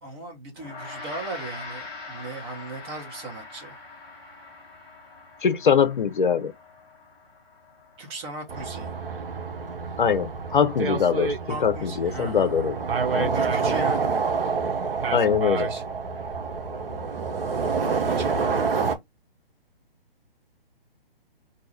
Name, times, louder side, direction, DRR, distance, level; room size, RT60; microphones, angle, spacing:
voice 1, 0.0-3.8 8.0-8.9 11.5-12.7 13.3-14.1 15.6-15.9 17.5-19.0, right 3 dB, 25° right, 1.1 m, -37 dB
Gong, 0.6-10.2, left 3 dB, 10° left, 0.7 m, -43 dB
voice 2, 5.4-6.5 10.0-11.3 11.6-12.7 13.1-13.4 15.1-15.7, left 7 dB, 55° left, 0.6 m, -22 dB
sound 1, 8.5-19.0, right 5 dB, 70° right, 0.8 m, -27 dB
2.7 x 2.4 x 4.1 m
figure-of-eight pair, 140°, 30 cm